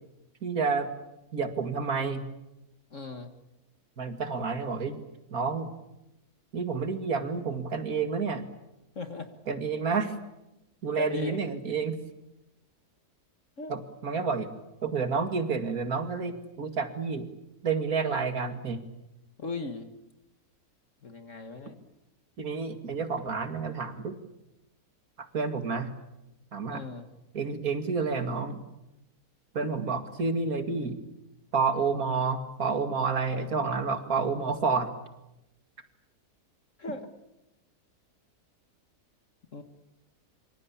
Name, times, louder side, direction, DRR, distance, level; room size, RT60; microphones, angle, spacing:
voice 1, 0.4-0.9 1.3-2.3 4.0-5.0 5.3-5.7 6.5-8.4 9.5-10.1 10.8-12.0 13.7-14.5 14.8-17.3 17.6-18.8 22.4-24.2 25.2-26.0 26.5-26.8 27.3-28.6 29.5-31.0 31.5-34.9, right 5 dB, 65° right, 8 dB, 2.6 m, -29 dB
voice 2, 2.9-3.3 9.0-9.3 11.0-11.4 13.6-13.7 19.4-19.9 21.0-21.8 26.7-27.1 36.8-37.1 39.5-39.6, left 3 dB, 50° left, 7 dB, 1.9 m, -38 dB
25.5 x 25.0 x 8.6 m, 0.92 s
omnidirectional pair, 1.7 m